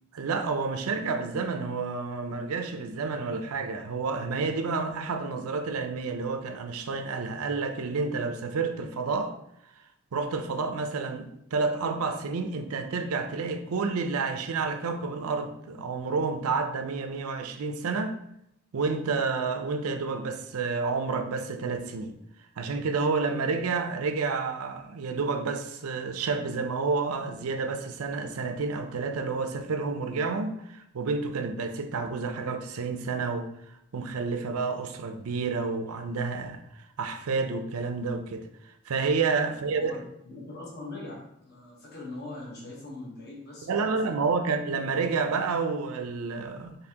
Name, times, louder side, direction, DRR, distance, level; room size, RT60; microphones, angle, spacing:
voice 1, 0.1-9.3 10.1-18.2 18.7-22.1 22.6-33.5 33.9-38.5 38.9-39.9 43.7-46.8, right 4 dB, 85° right, 0.5 m, -30 dB
voice 2, 39.5-44.2, left 2 dB, 45° left, 1.0 m, -42 dB
4.1 x 3.3 x 2.8 m
head